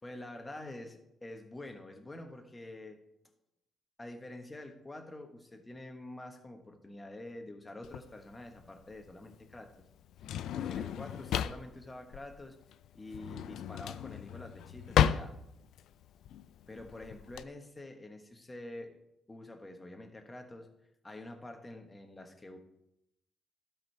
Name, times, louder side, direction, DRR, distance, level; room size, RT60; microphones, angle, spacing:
voice 1, 0.0-3.0 4.0-9.7 10.2-12.6 12.9-15.4 16.7-18.9 19.3-20.7 21.0-22.6, left 1 dB, 20° left, 5 dB, 1.3 m, -47 dB
Drawer open or close, 7.8-17.4, left 9 dB, 80° left, 0.4 m, -34 dB
12.0 x 5.1 x 4.6 m, 0.85 s
cardioid pair, 90°, 0 cm